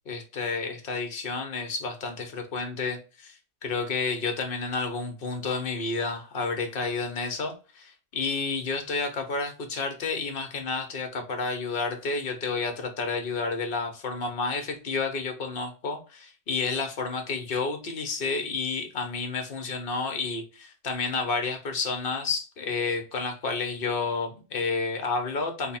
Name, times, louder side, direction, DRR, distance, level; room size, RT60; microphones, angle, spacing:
voice 1, 0.1-25.8, left 4 dB, 60° left, 5 dB, 0.9 m, -30 dB
3.3 x 2.1 x 4.1 m, 0.33 s
omnidirectional pair, 1.1 m